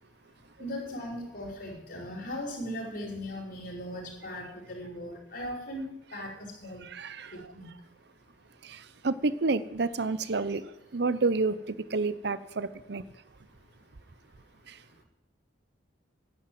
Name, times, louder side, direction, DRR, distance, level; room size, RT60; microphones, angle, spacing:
voice 1, 0.6-6.8 7.3-7.7, left 1 dB, 60° left, 5.0 m, -38 dB
voice 2, 6.8-7.5 8.6-13.0 14.7-14.8, right 3 dB, 60° right, 0.7 m, -30 dB
11.5 x 9.8 x 7.8 m
head